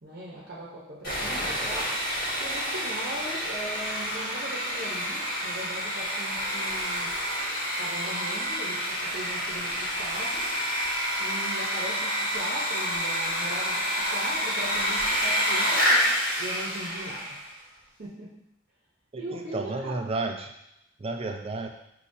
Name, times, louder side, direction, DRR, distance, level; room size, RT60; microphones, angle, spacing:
voice 1, 0.0-2.0 2.4-7.1 7.8-10.5 11.2-16.1 16.4-17.6 18.0-18.4 19.2-20.1, right 1 dB, 55° right, -6 dB, 0.8 m, -39 dB
Sawing, 1.0-17.5, equal, 55° left, 1.4 m, -28 dB
voice 2, 19.1-20.5 21.0-21.7, right 3 dB, 30° right, 4 dB, 0.4 m, -32 dB
5.3 x 2.8 x 2.7 m, 0.82 s
head